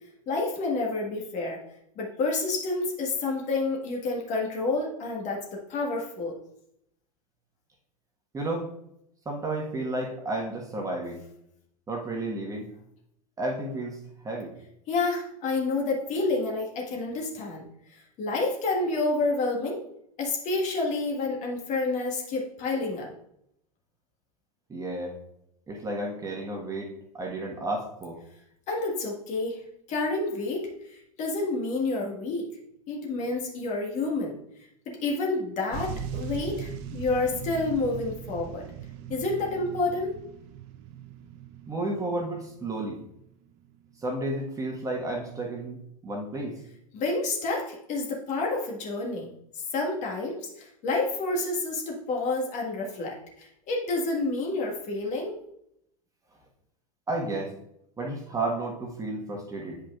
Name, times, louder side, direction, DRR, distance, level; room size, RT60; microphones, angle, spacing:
voice 1, 0.3-1.6 2.0-6.4 14.9-17.6 18.2-19.8 20.2-23.1 28.7-29.6 29.9-32.5 32.9-34.4 34.8-38.6 39.1-40.2 46.9-49.3 49.6-55.3, left 3 dB, 40° left, -1 dB, 1.6 m, -29 dB
voice 2, 8.3-8.7 9.2-11.2 11.9-12.7 13.4-14.5 24.7-25.2 25.7-28.2 41.7-43.0 44.0-46.6 57.1-57.6 58.0-59.8, right 2 dB, 15° right, 0 dB, 1.4 m, -32 dB
sound 1, 35.7-43.2 43.9-44.0, right 8 dB, 45° right, 0.6 m, -39 dB
8.7 x 5.0 x 2.4 m, 0.76 s
hypercardioid pair, 90°, 19 cm